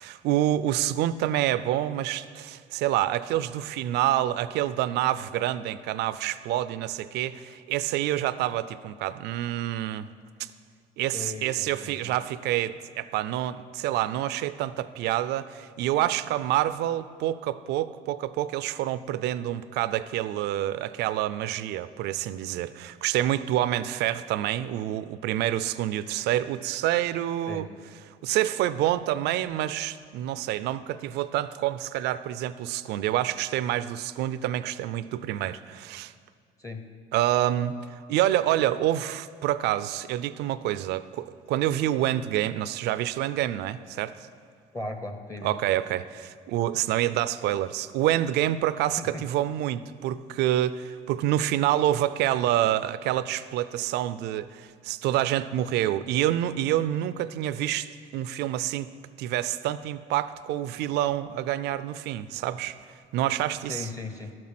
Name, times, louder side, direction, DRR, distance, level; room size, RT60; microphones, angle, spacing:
voice 1, 0.0-10.1 10.4-10.5 11.0-27.7 28.2-36.1 37.1-37.8 38.1-44.3 45.4-58.9 59.2-62.8 63.1-63.9, right 13 dB, 80° right, 15 dB, 0.4 m, -27 dB
voice 2, 11.1-12.2 27.5-27.7 36.6-36.9 44.7-45.7 49.0-49.2 63.7-64.4, left 2 dB, 20° left, 6 dB, 0.8 m, -37 dB
12.0 x 7.6 x 5.9 m, 2.1 s
cardioid pair, 110°, 17 cm